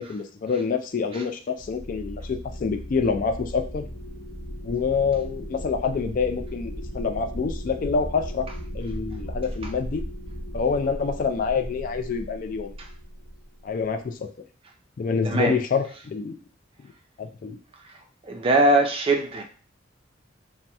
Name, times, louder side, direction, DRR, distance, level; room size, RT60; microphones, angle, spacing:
voice 1, 0.0-3.9 4.6-8.5 8.7-10.1 10.5-12.7 13.6-14.3 15.0-16.4 16.8-16.9 17.2-17.6, left 5 dB, 45° left, 0.3 m, -27 dB
sound 1, 1.6-13.8, equal, 80° left, 0.9 m, -36 dB
voice 2, 18.2-19.4, right 2 dB, 30° right, 0.4 m, -21 dB
2.8 x 2.0 x 3.3 m
head